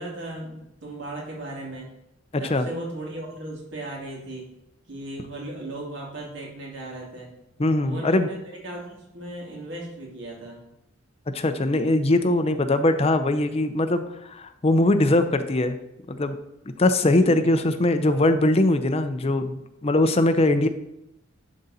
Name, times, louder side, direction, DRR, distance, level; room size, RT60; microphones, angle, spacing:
voice 1, 0.0-1.9 2.4-4.5 4.9-7.3 7.8-10.6 17.1-17.5, right 1 dB, 70° right, -2 dB, 2.4 m, -36 dB
voice 2, 7.6-8.3 11.3-15.8 16.1-16.3 16.8-20.7, left 2 dB, 30° left, 8 dB, 0.6 m, -21 dB
11.0 x 3.9 x 4.1 m, 0.85 s
head